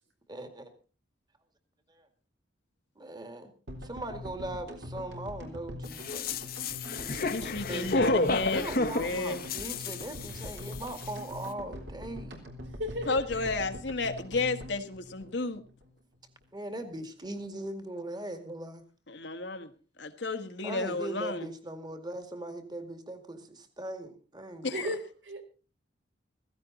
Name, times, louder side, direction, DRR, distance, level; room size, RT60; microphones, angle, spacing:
voice 1, 0.3-0.7 1.9-2.1 3.0-3.5 3.8-6.4 6.9-8.0 8.5-12.4 16.5-18.8 20.6-24.9, right 1 dB, 25° right, 8 dB, 2.1 m, -40 dB
sound 1, 3.7-15.9 16.1-16.2 16.4-16.5, equal, 70° right, 3.6 m, -43 dB
sound 2, 5.9-10.7 11.0-11.1, left 2 dB, 55° left, 1.2 m, -31 dB
voice 2, 7.3-9.4 13.1-15.6 19.1-19.7 20.0-21.5 24.6-24.9, left 3 dB, 70° left, 7 dB, 1.5 m, -32 dB
voice 3, 12.7-13.2 24.7-25.4, equal, 85° right, 5 dB, 3.8 m, -35 dB
16.0 x 15.5 x 4.1 m, 0.36 s
head